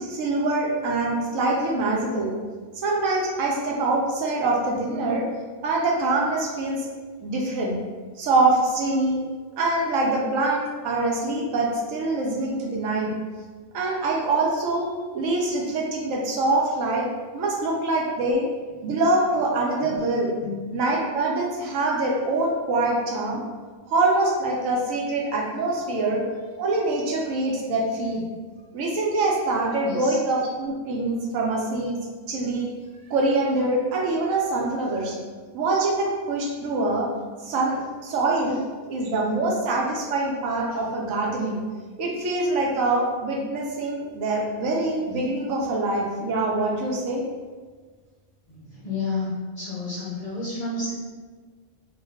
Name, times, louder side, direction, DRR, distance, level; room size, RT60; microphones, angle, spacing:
voice 1, 0.0-2.3 2.8-5.3 5.6-6.9 7.2-7.8 8.2-9.2 9.6-13.1 13.7-17.0 17.3-18.5 18.8-20.3 20.7-23.4 23.9-26.2 26.6-28.2 28.7-32.0 32.3-32.7 33.1-35.2 35.5-37.1 37.4-38.6 38.9-41.6 42.0-47.2, right 2 dB, 80° right, -1 dB, 1.0 m, -24 dB
voice 2, 29.8-30.2 48.5-50.9, left 3 dB, 45° left, -7 dB, 0.6 m, -31 dB
2.5 x 2.2 x 3.4 m, 1.5 s
omnidirectional pair, 1.3 m